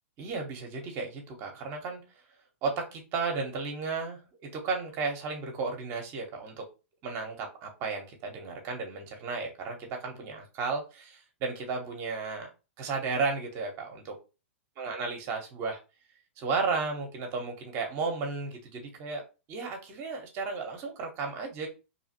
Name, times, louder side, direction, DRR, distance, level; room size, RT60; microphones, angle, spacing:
voice 1, 0.2-2.0 2.6-4.2 4.5-6.7 7.0-12.5 12.8-14.2 14.8-15.8 16.4-19.2 19.5-21.7, right 4 dB, 40° right, 2 dB, 0.8 m, -34 dB
2.8 x 2.4 x 2.8 m, 0.29 s
hypercardioid pair, 120°, 7 cm